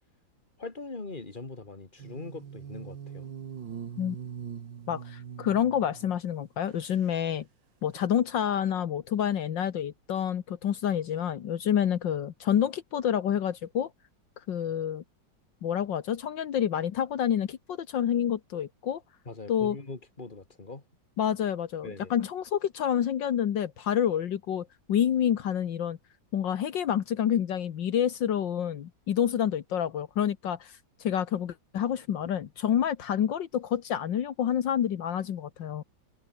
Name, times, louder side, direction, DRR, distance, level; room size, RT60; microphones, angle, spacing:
voice 1, 0.6-3.3 19.3-20.8 21.8-22.1, left 3 dB, 25° left, 2.9 m, -41 dB
sound 1, 2.0-6.2 6.7-7.2 7.9-8.0, right 7 dB, 75° right, 2.4 m, -42 dB
voice 2, 4.9-7.5 7.8-13.9 14.5-15.0 15.6-19.0 19.5-19.8 21.2-26.0 26.3-35.8, left 9 dB, 75° left, 1.9 m, -28 dB
omnidirectional pair, 2.0 m